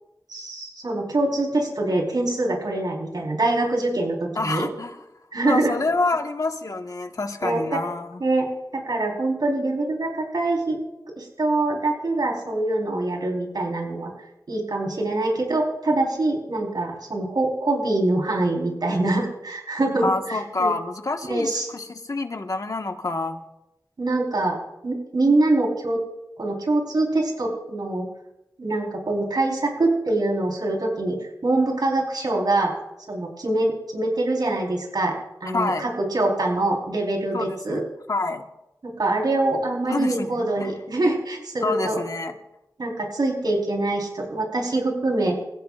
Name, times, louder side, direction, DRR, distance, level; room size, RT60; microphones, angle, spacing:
voice 1, 0.3-4.7 5.3-5.7 7.4-7.8 8.2-8.5 8.7-10.8 11.2-14.1 14.5-20.7 21.3-21.7 24.0-24.6 24.8-26.0 26.4-28.0 28.6-32.7 33.1-37.8 38.8-42.0 42.8-45.4, right 2 dB, 80° right, 0 dB, 4.5 m, -24 dB
voice 2, 4.4-5.0 5.4-8.2 20.0-23.4 35.5-35.9 37.3-37.8 38.1-38.4 39.9-40.7 41.6-42.4, left 3 dB, 55° left, 4 dB, 1.6 m, -27 dB
28.0 x 16.0 x 2.6 m, 0.90 s
wide cardioid pair, 75°, 7 cm